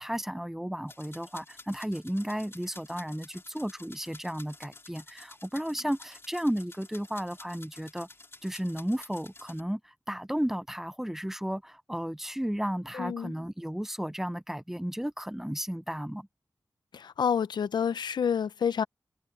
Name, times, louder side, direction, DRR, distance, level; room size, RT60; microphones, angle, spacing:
voice 1, 0.0-8.1 8.4-16.3, equal, 5° right, 0.6 m, -33 dB
sound 1, 0.9-9.6, left 2 dB, 35° left, 3.6 m, -51 dB
voice 2, 12.9-13.3 16.9-18.8, left 7 dB, 80° left, 0.6 m, -28 dB
wide cardioid pair, 105°, 7 cm